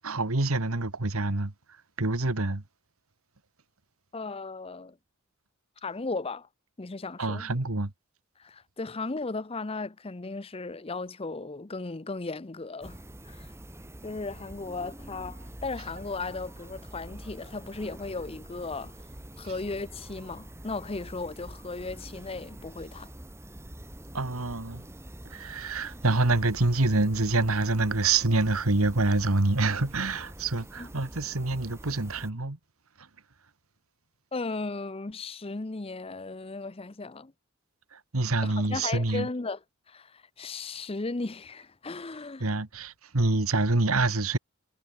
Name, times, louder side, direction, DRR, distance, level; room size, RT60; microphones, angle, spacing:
voice 1, 0.0-1.5 2.0-2.6 7.2-7.9 24.1-24.9 25.3-32.6 37.9-39.3 42.4-44.4, right 2 dB, 75° right, 1.7 m, -26 dB
voice 2, 4.1-5.0 5.8-6.5 6.8-7.5 8.4-13.0 13.2-13.5 14.0-18.9 19.4-23.1 30.8-30.9 34.3-37.3 38.4-39.6 39.9-42.5, left 3 dB, 25° left, 0.7 m, -36 dB
sound 1, 12.8-32.3, right 1 dB, 10° right, 1.4 m, -45 dB
head